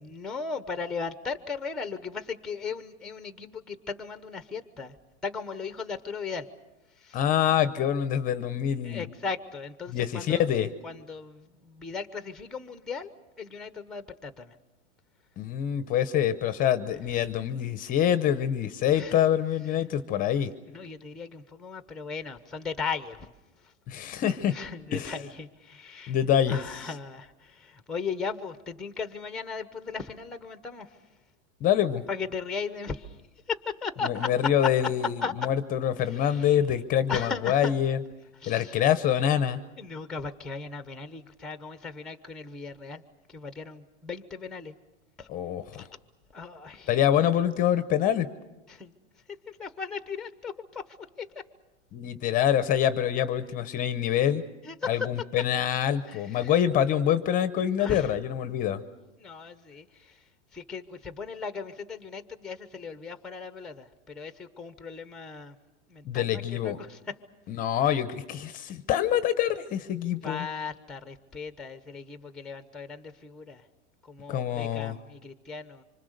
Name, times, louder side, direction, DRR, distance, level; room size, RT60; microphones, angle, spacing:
voice 1, 0.0-4.9 5.2-6.5 7.0-7.2 8.8-10.5 10.8-13.1 13.4-14.5 18.9-19.1 20.7-23.3 24.5-26.2 26.5-30.9 32.1-33.1 33.5-34.3 35.2-35.3 36.2-36.5 37.1-37.7 38.4-38.8 39.8-43.0 43.3-44.7 45.2-45.3 45.8-45.9 46.3-46.9 48.7-48.9 49.5-50.8 51.2-51.3 54.6-55.1 56.1-56.5 57.8-58.1 59.2-59.9 60.5-65.5 65.9-67.0 70.2-73.6 74.1-75.8, left 5 dB, ahead, 10 dB, 0.9 m, -37 dB
voice 2, 7.1-9.1 9.9-10.7 15.4-20.5 23.9-24.5 24.9-25.2 26.1-26.9 31.6-32.0 34.0-38.0 38.5-39.6 45.3-45.8 46.9-48.3 51.9-54.4 54.9-58.8 66.1-66.8 67.5-70.5 74.3-75.0, left 10 dB, 20° left, 12 dB, 0.8 m, -26 dB
25.5 x 25.0 x 6.6 m, 0.99 s
supercardioid pair, 155°, 36 cm